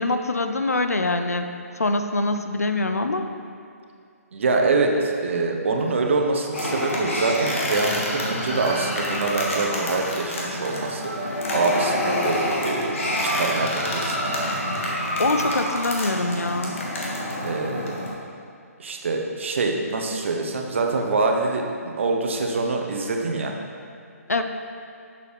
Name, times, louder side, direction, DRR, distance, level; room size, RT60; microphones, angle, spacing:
voice 1, 0.0-1.5 1.8-3.3 15.2-16.7 24.3-24.4, left 2 dB, 75° left, 7 dB, 0.6 m, -24 dB
voice 2, 4.3-11.1 11.5-14.6 17.4-17.9 18.8-23.5, right 3 dB, 50° right, 2 dB, 1.0 m, -25 dB
sound 1, 6.5-18.1, left 1 dB, 55° left, 1.7 m, -27 dB
sound 2, 8.5-16.5, right 2 dB, 30° right, 2.1 m, -37 dB
11.5 x 6.9 x 3.2 m, 2.4 s
figure-of-eight pair, 135°, 8 cm